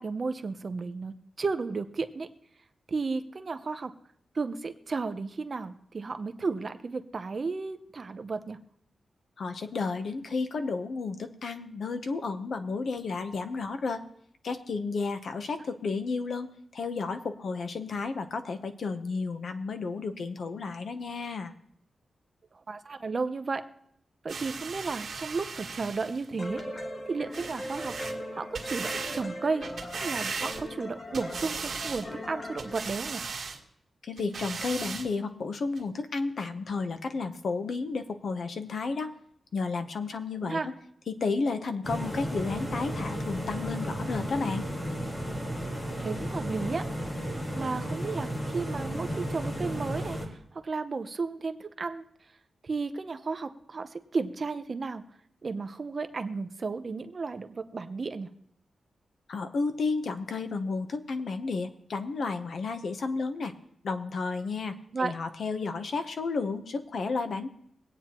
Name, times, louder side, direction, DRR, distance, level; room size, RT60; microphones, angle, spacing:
voice 1, 0.0-2.3 2.9-3.9 4.3-8.6 22.5-23.6 24.2-26.6 27.1-27.9 28.3-29.6 30.0-33.2 40.4-40.7 46.0-46.8 47.5-52.0 52.6-55.0 55.4-58.3 64.9-65.1, right 4 dB, 35° right, 9 dB, 0.7 m, -33 dB
voice 2, 9.4-14.0 14.4-21.5 34.0-39.1 39.5-40.7 41.1-44.7 59.3-63.5 63.8-67.5, left 4 dB, 55° left, 8 dB, 0.9 m, -32 dB
sound 1, 24.3-26.3 27.3-28.2 28.5-29.2 29.6-30.8 31.1-32.1 32.6-33.6 34.2-35.1 35.8-35.9, right 5 dB, 60° right, 1.8 m, -37 dB
sound 2, 26.4-32.8, equal, 35° left, 1.3 m, -39 dB
sound 3, 41.8-50.3, equal, 20° left, 2.0 m, -33 dB
23.5 x 8.9 x 3.0 m, 0.70 s
wide cardioid pair, 165°, 0 cm